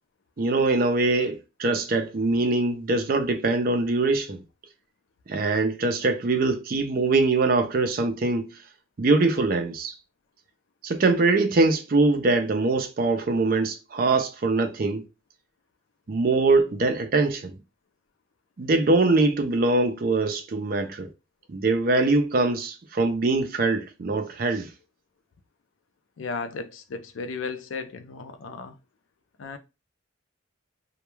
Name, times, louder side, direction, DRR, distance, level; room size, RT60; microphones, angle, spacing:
voice 1, 0.4-4.4 5.3-8.5 9.0-9.9 10.8-15.0 16.1-17.6 18.6-21.1 21.5-24.7, right 3 dB, 45° right, 0.4 m, -23 dB
voice 2, 26.2-28.8 29.4-29.6, left 4 dB, 75° left, 0.4 m, -35 dB
2.2 x 2.2 x 3.0 m
head